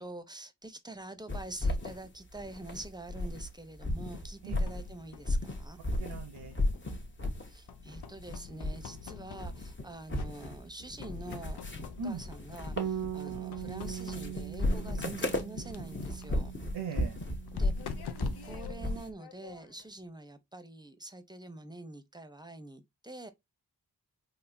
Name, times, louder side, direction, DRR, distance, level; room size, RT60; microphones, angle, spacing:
voice 1, 0.0-5.8 7.5-16.5 17.5-17.7 18.0-23.3, right 2 dB, 10° right, 0.7 m, -46 dB
sound 1, 1.3-3.5 3.8-6.2 6.5-7.5 7.8-9.0 9.3-19.1, left 1 dB, 30° left, 1.0 m, -35 dB
sound 2, 4.2-5.4 5.9-7.3 7.7-9.8 10.2-10.7 11.0-13.0 13.5-14.6 15.4-19.9, left 6 dB, 85° left, 0.6 m, -47 dB
voice 2, 6.0-6.6 12.0-12.2 15.0-15.2 16.7-17.2, right 4 dB, 90° right, 0.7 m, -39 dB
Bass guitar, 12.8-19.0, right 11 dB, 60° right, 0.5 m, -41 dB
3.6 x 2.7 x 2.6 m
cardioid pair, 50°, 38 cm